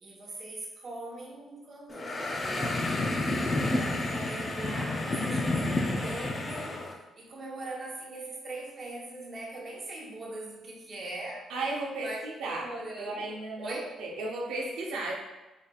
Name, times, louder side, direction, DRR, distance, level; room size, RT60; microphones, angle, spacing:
voice 1, 0.0-11.5 12.0-13.9, right 2 dB, 40° right, -2 dB, 1.0 m, -41 dB
sound 1, 1.9-6.9, left 2 dB, 30° left, 0.5 m, -30 dB
voice 2, 11.5-12.7 13.0-15.1, right 2 dB, 85° right, -2 dB, 0.8 m, -34 dB
4.0 x 3.3 x 2.4 m, 1.1 s
cardioid pair, 90°, 0 cm